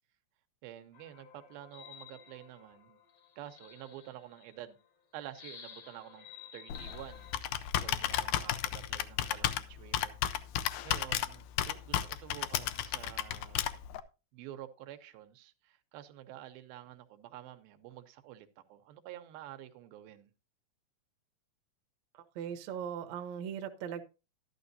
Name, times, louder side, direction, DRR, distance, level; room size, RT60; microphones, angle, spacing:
voice 1, 0.6-3.0 3.4-4.8 5.1-6.3 6.5-7.3 7.8-10.2 10.8-13.6 14.3-20.3, right 12 dB, 85° right, 2.7 m, -49 dB
sound 1, 0.9-4.7 5.3-7.4, left 8 dB, 55° left, 1.5 m, -53 dB
Computer keyboard, 6.7-14.0, left 12 dB, 80° left, 1.9 m, -34 dB
voice 2, 22.1-24.0, right 8 dB, 70° right, 1.7 m, -39 dB
12.0 x 11.5 x 2.7 m
omnidirectional pair, 4.2 m